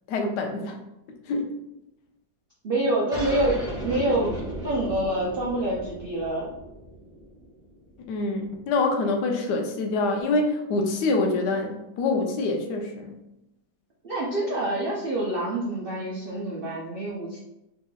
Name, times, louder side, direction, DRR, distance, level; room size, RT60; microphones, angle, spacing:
voice 1, 0.1-0.8 1.3-1.5 8.1-13.2, left 3 dB, 80° left, 3 dB, 1.2 m, -26 dB
voice 2, 2.6-4.4 4.6-6.5 14.0-17.4, right 1 dB, 65° right, -6 dB, 0.5 m, -26 dB
sound 1, 3.1-8.2, right 1 dB, 5° right, 0.5 m, -36 dB
4.1 x 2.8 x 2.3 m, 0.88 s
omnidirectional pair, 1.8 m